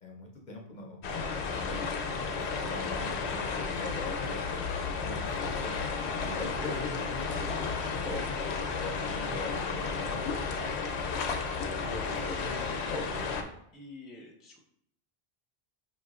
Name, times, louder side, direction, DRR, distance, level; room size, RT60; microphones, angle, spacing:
voice 1, 0.0-1.8 2.1-4.4 5.0-5.8 6.2-8.3 8.7-10.8 11.6-13.3, left 3 dB, 50° left, 0 dB, 0.7 m, -42 dB
sound 1, 1.0-13.4, left 4 dB, 80° left, 0.9 m, -33 dB
voice 2, 12.1-12.4 13.7-14.6, left 2 dB, ahead, -1 dB, 0.4 m, -47 dB
5.6 x 2.9 x 2.4 m, 0.71 s
omnidirectional pair, 1.1 m